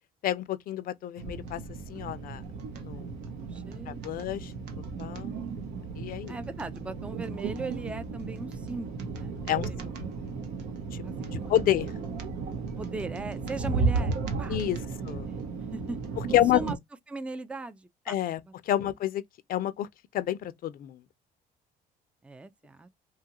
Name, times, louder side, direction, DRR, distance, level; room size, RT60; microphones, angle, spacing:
voice 1, 0.2-1.6 1.9-2.4 2.8-3.1 3.9-4.5 5.0-5.3 6.0-6.4 9.5-9.7 11.3-11.9 14.5-14.8 15.1-15.3 16.3-16.6 18.1-18.4 18.7-19.2 19.5-19.9 20.1-21.0, left 12 dB, 60° left, 0.5 m, -28 dB
sound 1, 1.2-16.8, right 4 dB, 75° right, 0.8 m, -34 dB
voice 2, 3.3-4.4 6.3-9.3 9.7-10.2 11.0-11.5 12.8-14.6 15.0-16.0 16.5-16.8 17.1-18.1 18.4-18.5 22.2-22.9, right 3 dB, 5° right, 0.3 m, -39 dB
2.8 x 2.4 x 2.8 m
cardioid pair, 110°, 17 cm